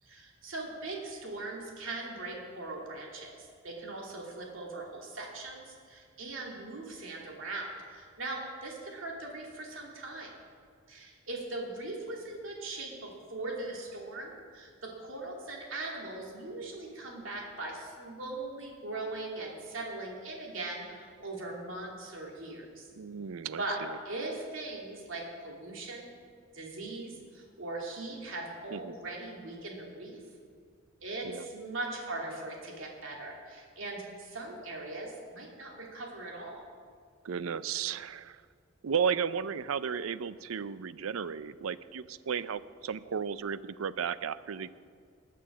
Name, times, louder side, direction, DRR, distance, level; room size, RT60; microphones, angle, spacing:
voice 1, 0.0-10.3 10.9-22.9 23.6-26.1 26.5-30.2 31.0-36.6, right 2 dB, 70° right, -1 dB, 2.8 m, -40 dB
voice 2, 23.0-23.6 23.9-24.0 28.7-29.0 31.2-31.5 37.2-38.4 38.8-44.7, right 7 dB, 90° right, 16 dB, 0.5 m, -34 dB
20.0 x 7.0 x 6.2 m, 2.1 s
head